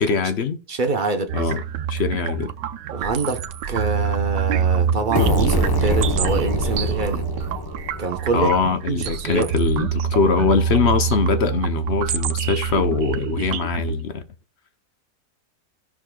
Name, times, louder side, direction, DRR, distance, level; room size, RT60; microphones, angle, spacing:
voice 1, 0.0-0.6 1.3-1.6 1.9-2.5 8.3-14.2, left 5 dB, 50° left, 0.8 m, -22 dB
voice 2, 0.7-1.5 2.9-3.4 3.7-7.3 8.0-8.5 8.9-9.5, right 3 dB, 35° right, 0.9 m, -25 dB
sound 1, 1.3-14.0, right 8 dB, 80° right, 1.3 m, -25 dB
sound 2, 5.1-8.8, left 2 dB, 20° left, 0.5 m, -25 dB
15.5 x 6.2 x 2.3 m
omnidirectional pair, 1.9 m